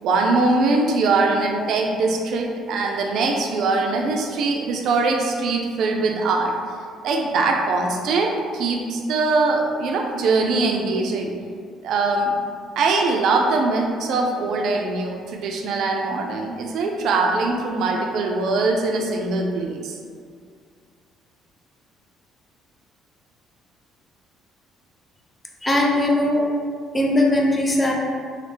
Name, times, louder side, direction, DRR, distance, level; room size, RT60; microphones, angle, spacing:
voice 1, 0.0-6.5 7.0-11.3 11.8-12.3 12.8-20.0, right 3 dB, 70° right, 1 dB, 0.3 m, -22 dB
voice 2, 25.6-26.5 26.9-27.9, left 1 dB, 20° left, -1 dB, 0.5 m, -19 dB
3.2 x 2.0 x 3.0 m, 2.1 s
supercardioid pair, 80°, 0 cm